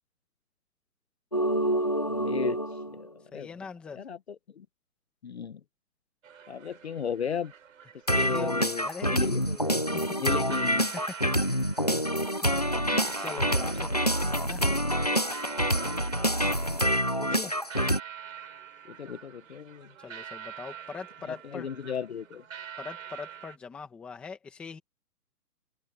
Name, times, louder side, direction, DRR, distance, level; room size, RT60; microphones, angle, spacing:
sound 1, 1.3-3.0 8.1-18.0, equal, 25° left, 0.5 m, -27 dB
voice 1, 2.0-2.6 3.0-3.5 4.0-4.2 4.6-4.7 5.2-5.6 6.5-7.5 8.1-9.4 10.1-10.9 12.8-13.1 19.0-19.9 21.5-22.4, left 7 dB, 40° left, 1.0 m, -35 dB
voice 2, 3.3-4.1 8.1-9.6 9.9-10.0 10.9-11.3 13.2-14.7 17.2-17.5 20.0-21.7 22.8-24.8, left 5 dB, ahead, 1.2 m, -42 dB
sound 2, 6.2-23.6, right 8 dB, 55° right, 6.3 m, -46 dB
open air
hypercardioid pair, 170°, 48 cm